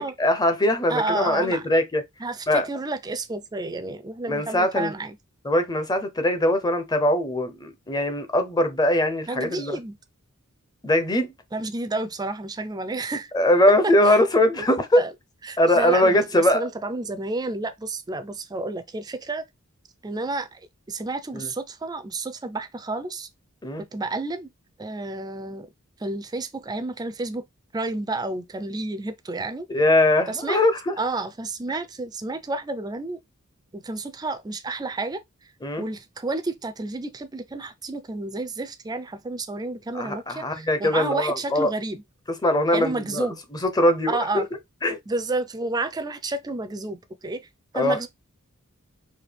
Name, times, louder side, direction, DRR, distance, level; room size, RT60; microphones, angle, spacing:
voice 1, 0.0-2.0 2.5-2.7 4.3-4.9 5.4-9.8 10.8-11.3 13.3-15.0 15.6-16.6 21.3-21.5 23.6-23.8 29.7-30.9 35.6-35.8 39.9-41.7 42.4-43.3 43.5-44.4 44.8-45.0 47.7-48.0, left 1 dB, 20° left, 0.7 m, -21 dB
voice 2, 0.9-1.6 2.2-5.2 9.3-9.9 11.5-13.3 13.8-14.2 15.0-15.1 15.4-19.4 20.0-20.6 20.9-23.3 23.9-24.5 24.8-25.7 26.0-27.4 27.7-29.7 30.3-30.6 31.0-33.2 33.7-35.2 35.8-42.0 42.7-43.4 44.1-44.5 45.1-47.4 47.7-48.1, right 2 dB, 20° right, 0.4 m, -30 dB
4.2 x 2.7 x 3.3 m
head